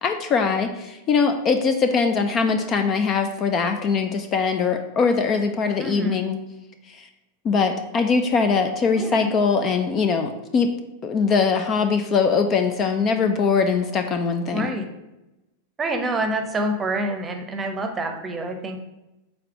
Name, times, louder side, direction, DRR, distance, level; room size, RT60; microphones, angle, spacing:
voice 1, 0.0-6.4 6.9-7.1 7.4-10.7 11.0-14.7, left 5 dB, 30° left, 7 dB, 0.5 m, -22 dB
voice 2, 5.8-6.2 8.9-9.3 14.5-14.9 15.8-18.8, right 1 dB, 20° right, 5 dB, 0.9 m, -27 dB
5.0 x 4.1 x 5.8 m, 0.97 s
figure-of-eight pair, 90°, 0 cm